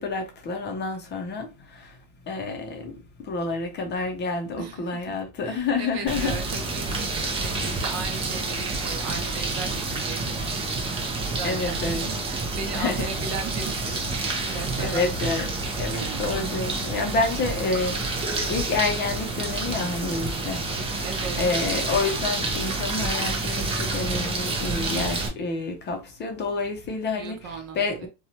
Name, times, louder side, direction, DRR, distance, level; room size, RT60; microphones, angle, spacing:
voice 1, 0.0-2.0 2.3-6.4 11.4-12.1 12.7-13.1 14.5-18.1 18.5-20.6 20.9-21.1 21.4-28.1, left 3 dB, 30° left, 0.7 m, -29 dB
voice 2, 4.6-5.0 5.4-15.0 16.0-16.2 21.0-21.4 27.1-28.1, right 5 dB, 45° right, 0.8 m, -37 dB
sound 1, 6.1-25.3, right 3 dB, 15° right, 0.6 m, -29 dB
2.8 x 2.3 x 2.7 m
supercardioid pair, 110°, 37 cm